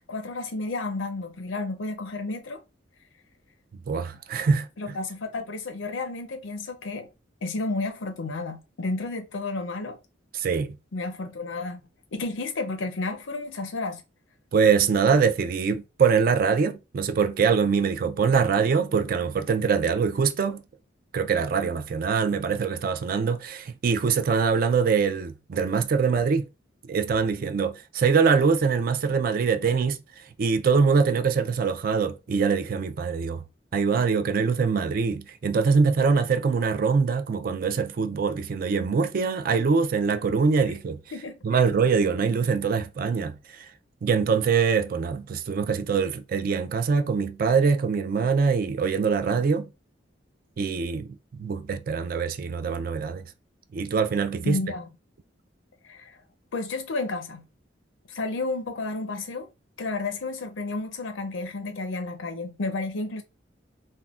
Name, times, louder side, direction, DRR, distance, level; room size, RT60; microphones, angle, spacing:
voice 1, 0.0-2.6 4.8-7.1 7.4-10.0 10.9-11.8 12.1-14.0 41.1-41.4 54.4-54.9 55.8-56.2 56.5-57.5 58.1-59.5 59.8-63.2, left 3 dB, 80° left, 0.6 m, -31 dB
voice 2, 3.9-4.7 10.3-10.8 14.5-20.6 21.1-26.5 26.8-33.4 33.7-41.0 41.4-43.7 44.0-49.7 50.6-53.3 53.7-54.6, right 5 dB, 50° right, 0.3 m, -23 dB
3.5 x 2.1 x 2.4 m
head